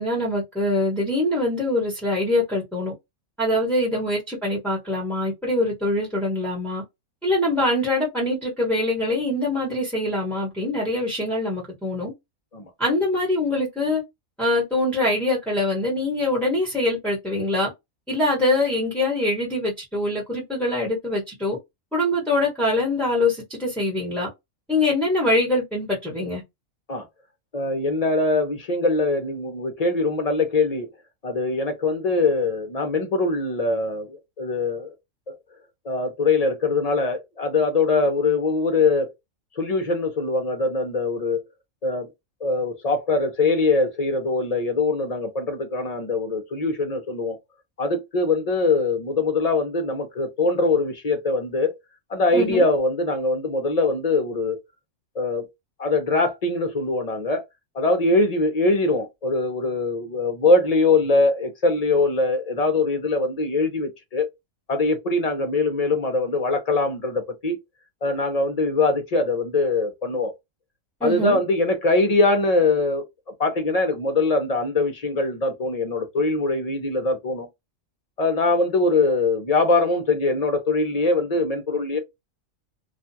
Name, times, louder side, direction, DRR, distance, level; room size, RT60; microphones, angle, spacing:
voice 1, 0.0-2.9 3.4-6.8 7.2-12.1 12.8-14.0 14.4-17.7 18.1-21.6 21.9-24.3 24.7-26.4 52.3-52.6 71.0-71.4, left 2 dB, ahead, 1.0 m, -23 dB
voice 2, 27.5-30.9 31.2-34.9 35.3-35.4 35.8-39.1 39.6-41.4 41.8-42.1 42.4-47.4 47.8-51.7 52.1-54.6 55.2-55.5 55.8-57.4 57.7-64.3 64.7-67.6 68.0-70.3 71.0-73.0 73.4-77.5 78.2-82.0, left 3 dB, 40° left, 0.6 m, -22 dB
2.5 x 2.3 x 2.6 m
omnidirectional pair, 1.4 m